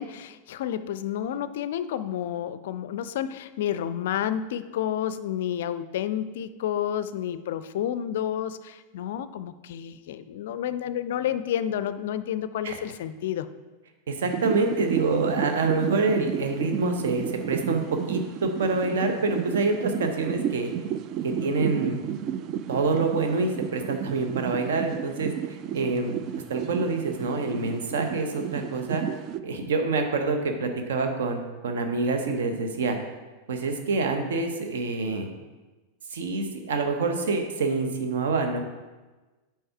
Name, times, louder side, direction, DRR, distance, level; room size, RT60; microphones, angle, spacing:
voice 1, 0.0-13.5, left 10 dB, 55° left, 13 dB, 0.4 m, -30 dB
voice 2, 14.1-20.7 21.2-22.0 22.7-26.2 26.5-29.0 29.4-33.0 33.5-35.3 36.1-38.6, right 3 dB, 60° right, 5 dB, 0.9 m, -26 dB
sound 1, 14.3-29.4, right 9 dB, 40° right, 0.3 m, -33 dB
7.8 x 4.7 x 4.5 m, 1.2 s
figure-of-eight pair, 90°, 0 cm